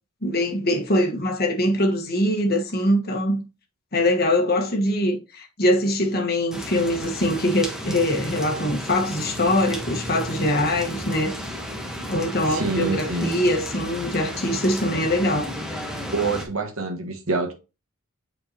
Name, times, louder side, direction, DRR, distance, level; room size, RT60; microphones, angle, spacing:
voice 1, 0.2-3.4 3.9-11.3 12.0-15.5, left 1 dB, 45° left, 1.3 m, -23 dB
sound 1, 6.5-16.5, equal, 5° right, 1.1 m, -33 dB
voice 2, 12.5-13.4 16.1-17.5, right 3 dB, 70° right, 1.4 m, -26 dB
7.9 x 4.6 x 2.8 m
head